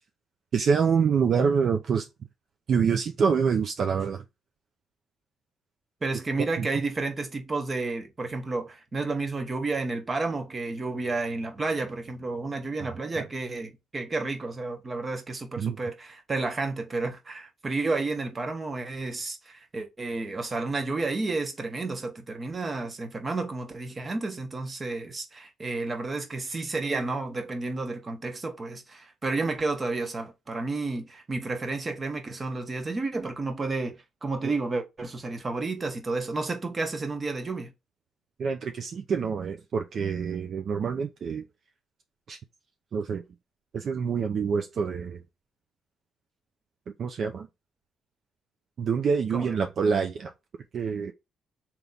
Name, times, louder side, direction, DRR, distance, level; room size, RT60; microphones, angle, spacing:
voice 1, 0.5-2.1 2.7-4.2 6.6-6.7 15.6-15.8 34.4-34.5 38.4-41.4 42.3-42.4 42.9-43.2 43.7-45.2 47.0-47.5 48.8-50.3 50.7-51.1, right 6 dB, 55° right, 0.5 m, -26 dB
voice 2, 6.0-37.7 49.3-49.6, right 3 dB, 30° right, 1.1 m, -31 dB
3.4 x 3.0 x 3.9 m
cardioid pair, 90°, 0 cm